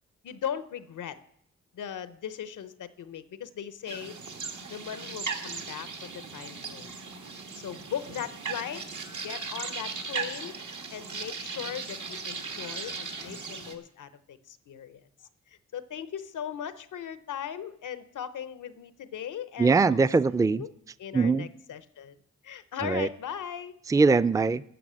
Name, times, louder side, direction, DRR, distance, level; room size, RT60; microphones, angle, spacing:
voice 1, 0.2-1.2 1.7-4.2 4.7-6.9 7.5-8.8 9.2-10.5 10.9-15.0 15.5-20.0 20.4-20.7 21.0-22.2 22.4-23.7, left 9 dB, 90° left, 13 dB, 0.7 m, -38 dB
sound 1, 3.9-13.7, right 5 dB, 75° right, 1.6 m, -37 dB
voice 2, 19.6-20.6 21.1-21.5 22.8-23.1 23.9-24.6, right 4 dB, 10° right, 15 dB, 0.4 m, -22 dB
14.0 x 6.5 x 7.4 m, 0.71 s
cardioid pair, 50°, 30 cm